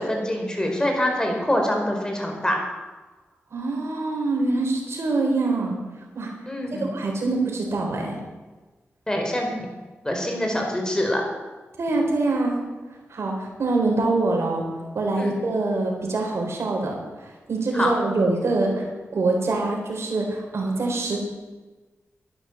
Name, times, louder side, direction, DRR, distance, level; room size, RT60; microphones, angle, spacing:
voice 1, 0.0-2.6 6.5-6.9 9.1-9.7 10.0-11.2 15.2-15.3 17.7-17.9, left 1 dB, 15° left, 1 dB, 4.4 m, -25 dB
voice 2, 3.5-5.8 6.1-6.3 6.7-8.2 11.8-12.6 13.1-14.6 14.9-17.0 17.5-21.2, right 2 dB, 70° right, 1 dB, 3.9 m, -24 dB
11.5 x 10.5 x 7.2 m, 1.2 s
cardioid pair, 65°, 5 cm